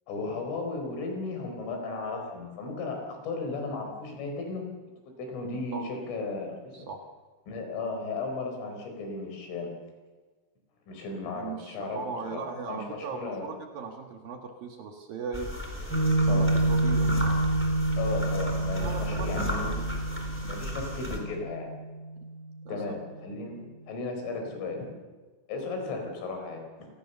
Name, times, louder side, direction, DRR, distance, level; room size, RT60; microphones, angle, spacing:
voice 1, 0.1-4.7 5.1-6.9 7.5-9.7 10.9-13.5 16.3-16.5 18.0-19.9 20.4-21.7 22.7-24.9 25.5-26.9, left 3 dB, 80° left, 4 dB, 7.1 m, -35 dB
voice 2, 11.2-15.5 16.2-17.2 18.8-19.5 22.7-23.0, right 5 dB, 60° right, 3 dB, 2.8 m, -38 dB
sound 1, 15.3-21.2, left 1 dB, 5° left, 3.1 m, -34 dB
Piano, 15.9-22.6, right 2 dB, 20° right, 8.4 m, -28 dB
30.0 x 19.0 x 6.9 m, 1.4 s
omnidirectional pair, 5.6 m